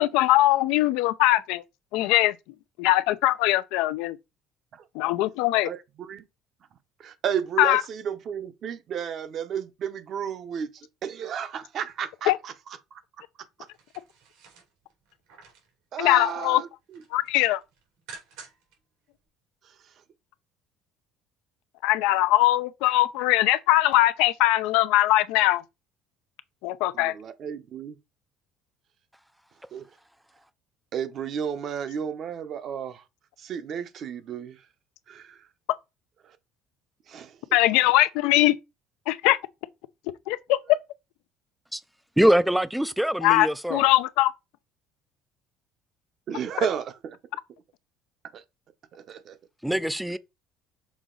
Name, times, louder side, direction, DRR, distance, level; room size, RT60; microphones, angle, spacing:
voice 1, 0.0-1.6 1.9-2.3 2.8-4.2 4.9-5.7 7.6-7.8 12.3-12.4 16.0-16.6 17.1-17.6 21.8-25.6 26.6-27.1 37.5-38.6 39.1-39.4 40.3-40.6 43.2-44.3, left 16 dB, 85° left, 0.5 m, -21 dB
voice 2, 5.6-6.2 7.0-12.5 12.9-13.0 15.9-17.0 19.6-19.9 26.9-28.0 29.7-29.9 30.9-33.0 33.4-34.7 35.1-35.5 36.2-36.4 37.1-37.4 46.3-47.2 48.3-48.4 48.9-49.4, right 8 dB, 45° right, 0.8 m, -33 dB
sound 1, 13.6-15.7 16.1-16.6 16.9-18.8 19.1-19.2, right 5 dB, 85° right, 3.1 m, -50 dB
voice 3, 42.2-43.8 49.6-50.2, equal, ahead, 0.4 m, -23 dB
6.3 x 4.0 x 3.8 m
cardioid pair, 150°, 0 cm